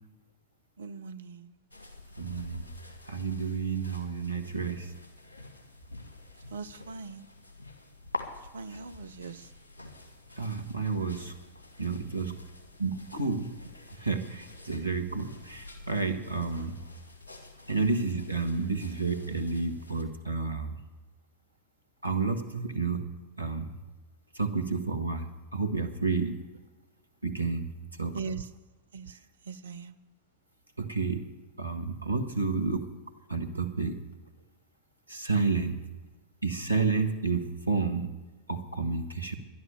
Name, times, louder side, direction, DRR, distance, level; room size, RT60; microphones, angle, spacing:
voice 1, 0.8-1.6 6.5-7.3 8.5-9.5 16.6-16.7 17.7-17.8 28.1-28.5 28.9-29.2 29.4-29.9, right 5 dB, 70° right, 10 dB, 0.5 m, -40 dB
sound 1, 1.7-20.0, left 2 dB, 75° left, 1.8 m, -47 dB
voice 2, 2.2-2.6 3.1-4.9 10.4-11.3 11.8-12.3 12.8-13.5 14.0-16.8 17.7-20.7 22.0-23.0 23.4-23.7 24.3-26.4 27.2-27.7 28.0-28.1 30.8-31.2 31.6-32.8 33.3-34.0 35.1-35.8 36.4-38.1 38.5-39.4, right 4 dB, 85° right, 5 dB, 1.3 m, -30 dB
12.0 x 11.0 x 6.9 m, 1.2 s
figure-of-eight pair, 90°, 0 cm